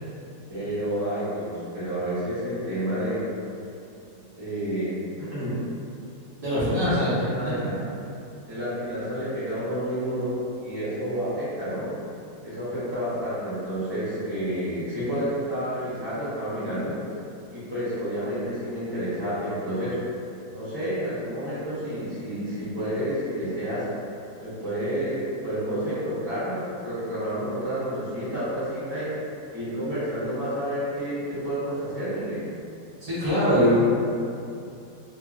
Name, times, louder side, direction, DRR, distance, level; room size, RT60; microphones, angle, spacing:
voice 1, 0.5-3.3 4.4-5.6 6.5-7.7 8.5-10.4 10.6-11.9 12.4-17.0 17.5-20.0 20.5-23.9 24.4-29.3 29.5-32.5, equal, 20° right, -12 dB, 0.9 m, -30 dB
voice 2, 6.4-7.1 33.0-33.8, equal, 40° right, -11 dB, 0.5 m, -22 dB
2.9 x 2.7 x 2.4 m, 2.6 s
omnidirectional pair, 1.6 m